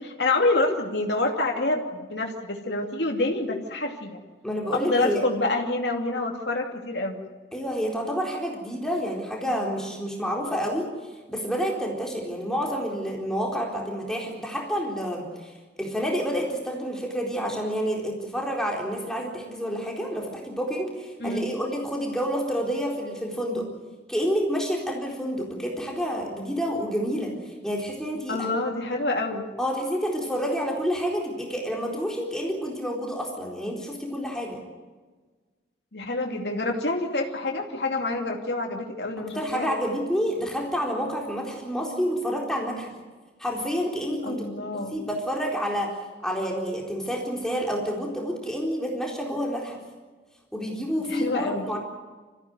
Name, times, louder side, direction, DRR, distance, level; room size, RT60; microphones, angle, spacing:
voice 1, 0.0-4.2 4.7-7.2 21.2-21.5 28.3-29.5 35.9-39.7 44.2-45.0 51.1-51.6, left 2 dB, 85° left, 1 dB, 2.7 m, -27 dB
voice 2, 4.4-5.2 7.5-10.9 11.3-23.7 24.1-28.5 29.6-34.6 39.2-42.9 43.4-44.4 44.7-45.9 46.2-49.8 50.5-51.8, equal, 5° left, -1 dB, 4.2 m, -29 dB
26.0 x 15.5 x 9.5 m, 1.4 s
head